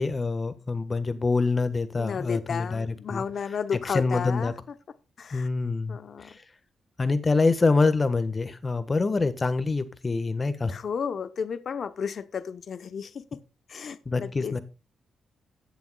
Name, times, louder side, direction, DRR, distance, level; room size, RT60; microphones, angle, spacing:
voice 1, 0.0-3.2 3.9-4.5 5.3-6.3 7.0-10.7 14.0-14.6, left 3 dB, 30° left, 12 dB, 1.3 m, -25 dB
voice 2, 2.0-4.6 5.2-5.5 5.9-6.4 10.7-13.4 13.7-14.6, left 6 dB, 60° left, 12 dB, 0.8 m, -33 dB
17.5 x 7.0 x 2.3 m, 0.31 s
cardioid pair, 80°, 0 cm